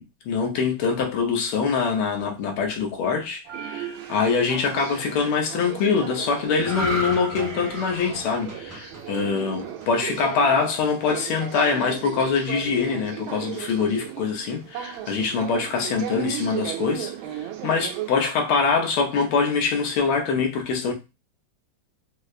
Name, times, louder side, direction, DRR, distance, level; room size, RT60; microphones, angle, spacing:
voice 1, 0.0-17.1 17.4-20.9, left 5 dB, 90° left, 1.6 m, -24 dB
sound 1, 3.5-18.1, right 11 dB, 75° right, 1.3 m, -36 dB
sound 2, 6.6-10.1 10.5-10.7, equal, 45° right, 0.4 m, -33 dB
4.8 x 2.1 x 2.3 m
omnidirectional pair, 2.3 m